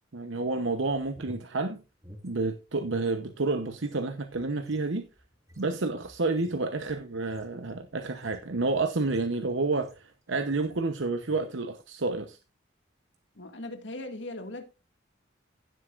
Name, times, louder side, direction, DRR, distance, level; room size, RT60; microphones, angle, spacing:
voice 1, 0.1-1.8 2.2-5.0 5.6-12.4, right 3 dB, 85° right, 0.9 m, -30 dB
sound 1, 1.1-3.2 3.5-10.2 10.5-10.9 11.2-11.5, equal, 15° right, 2.2 m, -53 dB
voice 2, 13.4-14.6, left 2 dB, 70° left, 2.1 m, -39 dB
16.0 x 7.9 x 2.5 m
head